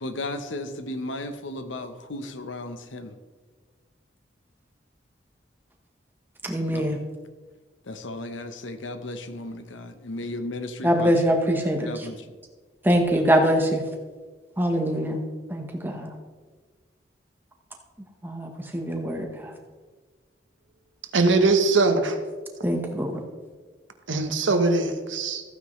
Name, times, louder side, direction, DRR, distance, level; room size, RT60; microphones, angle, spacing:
voice 1, 0.0-3.1 6.7-6.9 7.8-11.1 11.9-12.2, left 2 dB, 85° left, 9 dB, 0.9 m, -35 dB
voice 2, 6.4-7.0 10.8-12.1 12.8-13.8 14.6-15.2 15.5-16.1 18.2-19.5 22.6-23.1, equal, 10° right, 3 dB, 1.1 m, -23 dB
voice 3, 21.1-22.2 24.1-25.4, right 3 dB, 85° right, 7 dB, 1.1 m, -21 dB
14.5 x 9.3 x 3.2 m, 1.4 s
head